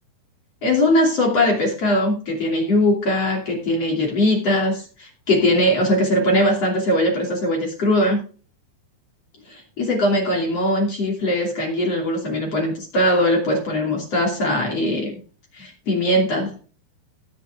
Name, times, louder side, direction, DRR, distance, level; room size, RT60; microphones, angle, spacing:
voice 1, 0.6-8.2 9.5-15.2 15.5-16.6, left 1 dB, 35° left, 0 dB, 3.3 m, -20 dB
17.5 x 6.4 x 3.5 m, 0.37 s
omnidirectional pair, 5.7 m